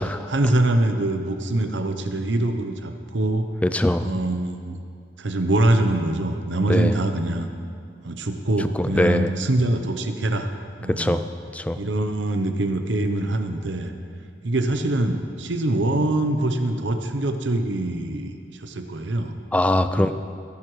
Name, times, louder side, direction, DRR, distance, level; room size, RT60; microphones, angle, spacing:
voice 1, 0.3-3.5 4.0-4.8 5.2-7.5 8.0-10.5 10.8-11.2 11.7-13.9 14.4-19.3 19.9-20.1, right 1 dB, 75° right, 7 dB, 0.9 m, -24 dB
voice 2, 3.6-4.1 6.7-6.9 8.8-9.3 10.9-11.2 11.5-11.8 19.5-20.1, left 1 dB, 5° left, 10 dB, 0.3 m, -21 dB
18.5 x 10.5 x 3.2 m, 2.2 s
head